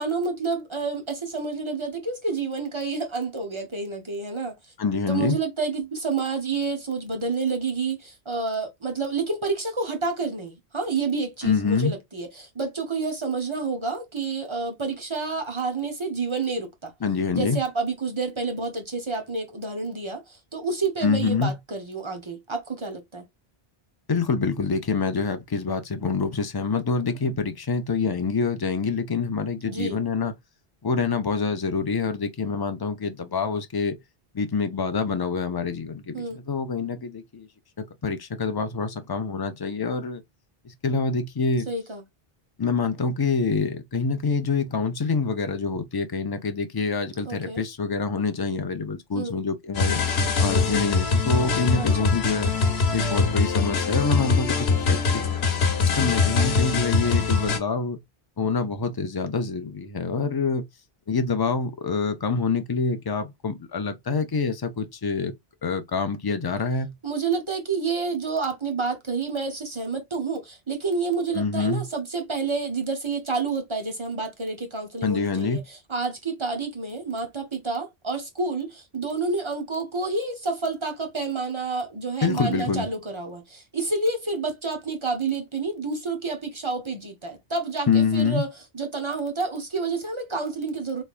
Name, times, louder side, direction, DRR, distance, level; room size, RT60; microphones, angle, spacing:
voice 1, 0.0-4.5 5.1-16.9 17.3-23.2 29.7-30.0 36.1-36.4 41.7-42.0 47.2-47.6 49.1-49.3 51.7-52.1 67.0-91.0, right 4 dB, 30° right, 0.8 m, -29 dB
voice 2, 4.8-5.4 11.4-11.9 17.0-17.6 21.0-21.5 24.1-30.3 30.8-34.0 34.3-37.5 37.8-40.2 40.6-41.7 42.6-50.0 50.4-52.5 52.9-55.2 55.9-58.0 58.4-60.6 61.1-65.3 65.6-66.9 71.3-71.8 75.0-75.6 82.2-82.9 87.9-88.4, left 4 dB, 30° left, 0.4 m, -26 dB
sound 1, 49.7-57.6, left 4 dB, 90° left, 1.1 m, -23 dB
3.3 x 3.2 x 2.4 m
omnidirectional pair, 1.0 m